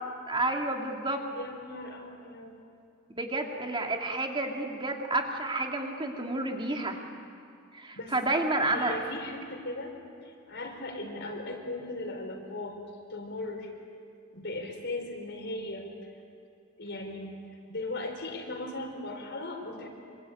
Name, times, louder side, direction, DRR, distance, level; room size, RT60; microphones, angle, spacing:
voice 1, 0.3-1.2 3.2-7.0 7.7-9.0, right 2 dB, 25° right, 2 dB, 2.6 m, -30 dB
voice 2, 1.3-2.5 7.9-8.1 8.7-12.8 13.1-13.7 14.3-15.9 16.8-17.3 17.7-19.9, left 2 dB, 55° left, 3 dB, 4.5 m, -38 dB
26.5 x 26.0 x 8.6 m, 2.4 s
head